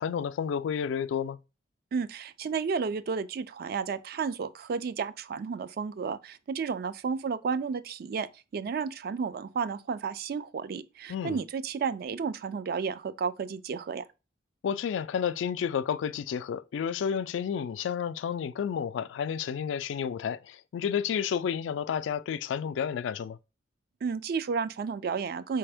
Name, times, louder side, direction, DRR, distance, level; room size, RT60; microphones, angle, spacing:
voice 1, 0.0-1.4 11.1-11.4 14.6-23.4, left 7 dB, 80° left, 0.3 m, -31 dB
voice 2, 1.9-14.0 24.0-25.6, right 5 dB, 55° right, 0.3 m, -32 dB
4.3 x 3.4 x 3.4 m
head